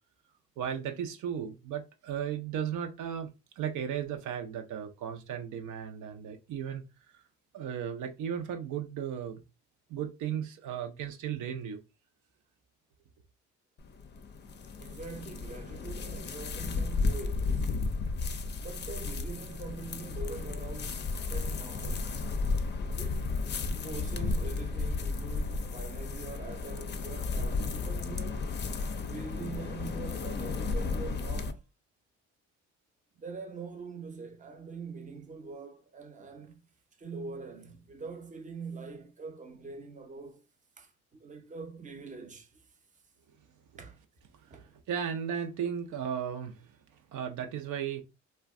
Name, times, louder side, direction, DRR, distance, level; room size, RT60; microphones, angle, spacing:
voice 1, 0.6-3.3 3.6-6.8 7.1-7.2 7.5-9.4 9.9-11.8 44.4-46.8 47.1-48.0, right 8 dB, 75° right, 0.6 m, -35 dB
sound 1, 13.8-31.5, left 4 dB, 35° left, 0.5 m, -33 dB
voice 2, 14.8-17.9 18.6-22.4 23.0-23.4 23.8-28.5 28.9-31.6 33.2-36.6 37.0-40.4 40.8-42.6 43.8-44.0 44.5-44.7, right 4 dB, 25° right, 0.6 m, -44 dB
2.5 x 2.2 x 3.5 m
cardioid pair, 90°, 30 cm